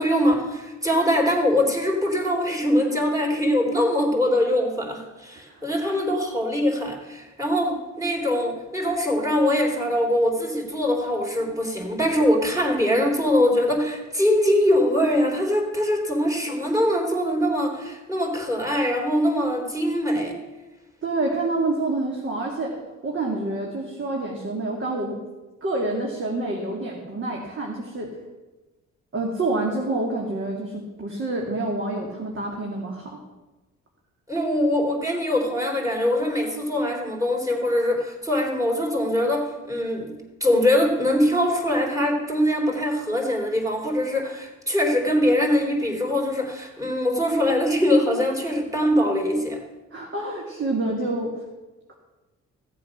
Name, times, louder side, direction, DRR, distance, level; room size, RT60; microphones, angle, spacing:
voice 1, 0.0-20.4 34.3-40.1 40.4-49.6, left 1 dB, 10° right, 1 dB, 3.5 m, -22 dB
voice 2, 21.0-22.8 23.0-25.2 25.6-28.1 29.1-33.2 49.9-51.4, right 2 dB, 40° right, -1 dB, 2.4 m, -27 dB
15.5 x 7.6 x 6.0 m, 1.2 s
cardioid pair, 90°, 30 cm